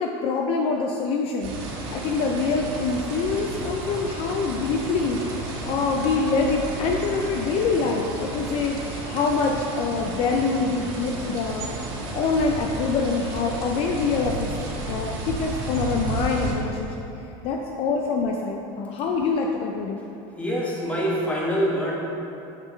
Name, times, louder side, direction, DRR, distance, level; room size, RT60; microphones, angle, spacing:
voice 1, 0.0-1.5 1.9-5.4 5.6-11.7 12.2-14.5 14.9-17.0 17.4-20.0, left 4 dB, 45° left, 1 dB, 0.5 m, -25 dB
Sablon Fountain, 1.4-16.5, right 1 dB, 80° right, 1.5 m, -32 dB
voice 2, 20.4-21.9, equal, 10° left, -4 dB, 1.3 m, -25 dB
6.6 x 6.4 x 3.1 m, 2.8 s
supercardioid pair, 135°, 13 cm